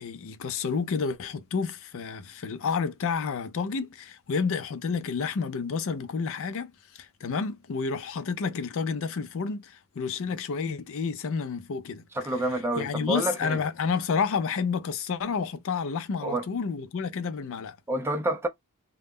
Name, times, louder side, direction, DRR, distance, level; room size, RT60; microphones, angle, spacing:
voice 1, 0.0-12.0 12.8-17.8, left 5 dB, 60° left, 0.4 m, -30 dB
voice 2, 12.2-13.6 16.2-16.5 17.9-18.5, right 1 dB, 10° right, 0.4 m, -28 dB
2.2 x 2.0 x 3.4 m
head